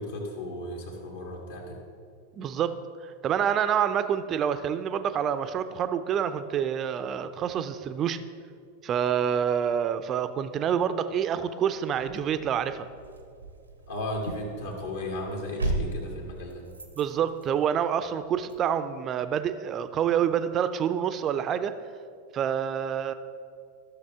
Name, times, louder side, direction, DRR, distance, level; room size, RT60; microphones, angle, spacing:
voice 1, 0.0-1.8 13.9-16.7, left 1 dB, 60° left, 0 dB, 1.9 m, -35 dB
voice 2, 2.4-2.8 3.2-8.2 8.8-12.8 17.0-21.7 22.3-23.1, right 8 dB, 30° right, 11 dB, 0.5 m, -27 dB
sound 1, 11.9-18.7, right 2 dB, 80° right, 0.8 m, -37 dB
14.0 x 6.6 x 3.5 m, 2.3 s
figure-of-eight pair, 90°, 0 cm